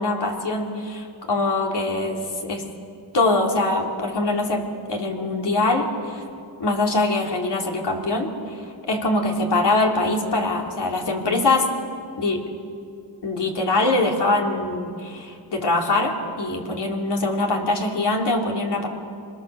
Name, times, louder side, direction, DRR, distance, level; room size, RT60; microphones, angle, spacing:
voice 1, 0.0-2.7 3.1-6.2 6.6-11.7 12.2-12.5 13.2-18.9, left 2 dB, 60° left, 0 dB, 3.4 m, -23 dB
25.5 x 21.0 x 6.9 m, 2.5 s
cardioid pair, 85°, 47 cm